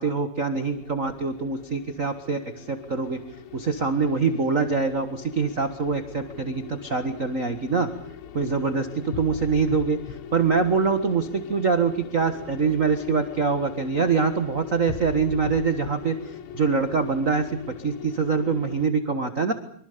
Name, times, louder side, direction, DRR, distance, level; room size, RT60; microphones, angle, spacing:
voice 1, 0.0-3.2 3.5-7.9 8.3-17.6 17.8-19.5, right 4 dB, 50° right, 8 dB, 0.9 m, -24 dB
sound 1, 0.5-18.9, left 8 dB, 85° left, 3.1 m, -41 dB
26.0 x 25.0 x 6.9 m, 0.62 s
omnidirectional pair, 4.2 m